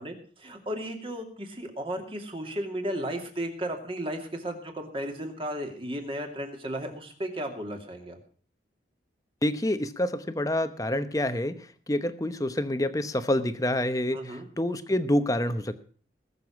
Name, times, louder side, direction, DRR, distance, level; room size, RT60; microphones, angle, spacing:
voice 1, 0.0-8.2 14.1-14.5, right 1 dB, 30° right, 4 dB, 2.6 m, -34 dB
voice 2, 9.4-15.7, left 1 dB, 20° left, 11 dB, 0.9 m, -27 dB
20.5 x 7.0 x 5.8 m, 0.43 s
head